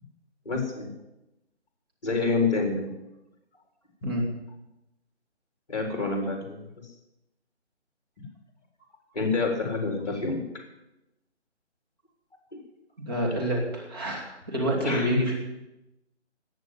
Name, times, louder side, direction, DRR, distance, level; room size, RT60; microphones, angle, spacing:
voice 1, 0.4-0.9 2.0-2.9 5.7-6.6 9.1-10.4 12.5-12.6 14.8-15.2, left 3 dB, 35° left, 1 dB, 4.2 m, -27 dB
voice 2, 13.0-15.4, right 1 dB, 20° right, -2 dB, 2.7 m, -28 dB
19.0 x 6.9 x 9.6 m, 0.93 s
figure-of-eight pair, 170°, 35 cm